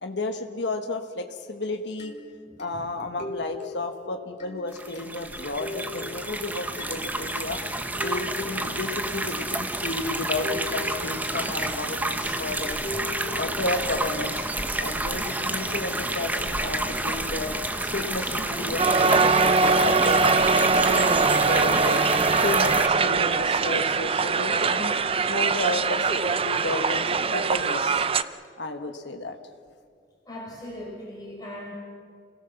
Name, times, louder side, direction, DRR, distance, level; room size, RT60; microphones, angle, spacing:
voice 1, 0.0-2.1 2.6-7.6 8.0-12.8 13.4-14.4 14.8-17.5 17.8-20.2 20.8-22.0 22.4-24.9 25.3-28.0 28.6-29.4, left 2 dB, 70° left, 5 dB, 1.4 m, -32 dB
sound 1, 2.0-14.8, left 3 dB, 40° left, 3.1 m, -41 dB
voice 2, 2.5-2.8 8.5-8.7 30.3-31.7, left 1 dB, 20° left, -4 dB, 5.5 m, -40 dB
sound 2, 4.7-22.9, right 1 dB, 10° right, 1.0 m, -29 dB
Crowd, 18.8-28.2, right 4 dB, 30° right, 0.5 m, -22 dB
28.0 x 17.5 x 7.1 m, 2.1 s
head